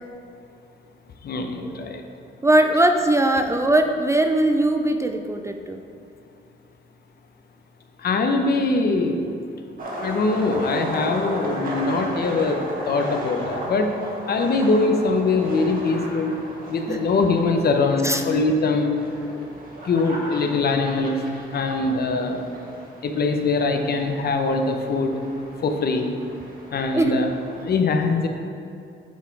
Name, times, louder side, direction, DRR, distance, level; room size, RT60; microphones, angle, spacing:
voice 1, 1.2-2.0 8.0-9.3 10.0-13.9 14.3-16.4 16.7-19.0 19.3-19.5 19.9-21.2 21.5-22.4 23.0-25.1 25.6-26.1 26.7-27.3 27.6-28.3, left 3 dB, 50° left, 5 dB, 0.8 m, -22 dB
voice 2, 2.4-5.8 16.9-17.0 18.0-18.2 26.9-27.2, right 1 dB, 15° right, 5 dB, 0.4 m, -20 dB
sound 1, 9.8-27.6, right 1 dB, 45° right, 1.6 m, -35 dB
8.2 x 4.2 x 4.7 m, 2.6 s
cardioid pair, 90°, 20 cm